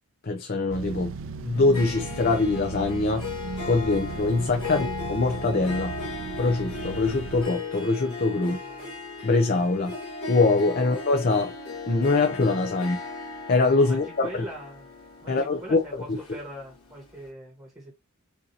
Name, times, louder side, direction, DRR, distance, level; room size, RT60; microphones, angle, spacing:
voice 1, 0.2-1.1 1.4-3.3 3.6-5.9 6.4-8.6 9.2-9.9 10.3-11.5 11.9-13.0 13.5-14.3 15.3-15.8 16.1-16.2, left 3 dB, 45° left, 0.6 m, -23 dB
sound 1, 0.7-7.4, right 5 dB, 60° right, 0.4 m, -37 dB
Harp, 1.5-16.9, left 4 dB, 80° left, 2.0 m, -37 dB
voice 2, 8.5-8.9 13.8-14.9 15.2-17.9, equal, 15° right, 1.6 m, -42 dB
6.4 x 2.7 x 2.8 m
head